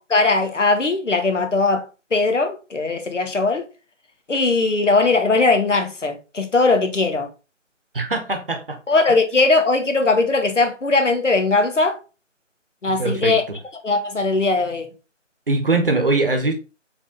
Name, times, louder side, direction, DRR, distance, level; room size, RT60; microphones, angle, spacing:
voice 1, 0.1-1.8 2.1-3.6 4.3-7.3 8.9-12.0 12.8-13.4 13.8-14.9, left 3 dB, 75° left, 1.0 m, -19 dB
voice 2, 7.9-8.8 12.9-13.6 15.5-16.5, right 3 dB, 45° right, 0.9 m, -22 dB
5.0 x 3.5 x 2.5 m
figure-of-eight pair, 155°, 37 cm